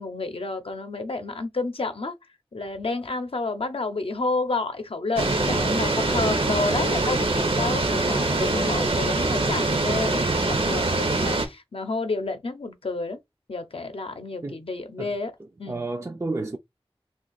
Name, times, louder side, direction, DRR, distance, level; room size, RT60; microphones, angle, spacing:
voice 1, 0.0-2.2 2.5-13.2 13.5-15.3 15.6-15.9, left 3 dB, 70° left, 0.6 m, -30 dB
sound 1, 5.2-11.5, right 2 dB, 65° right, 0.7 m, -24 dB
voice 2, 15.7-16.6, right 2 dB, 30° right, 0.4 m, -31 dB
2.6 x 2.4 x 3.9 m
wide cardioid pair, 50°, 10 cm